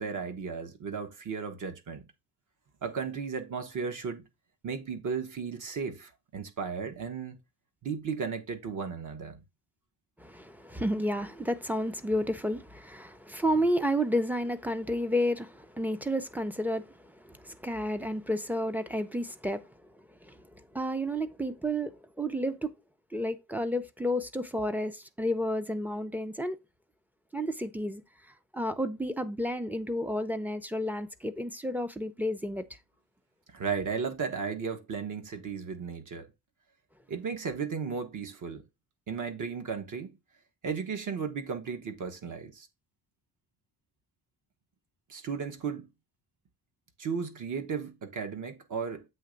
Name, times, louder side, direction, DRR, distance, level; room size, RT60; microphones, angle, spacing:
voice 1, 0.0-2.0 2.8-4.2 4.6-7.4 7.8-9.4 33.5-36.3 37.1-38.6 39.1-40.1 40.6-42.7 45.1-45.9 47.0-49.0, right 6 dB, 45° right, 1.3 m, -35 dB
voice 2, 10.2-19.6 20.2-22.7 23.1-26.6 27.3-28.0 28.5-32.7, equal, 5° right, 0.5 m, -31 dB
7.8 x 3.3 x 5.1 m
cardioid pair, 140°, 41 cm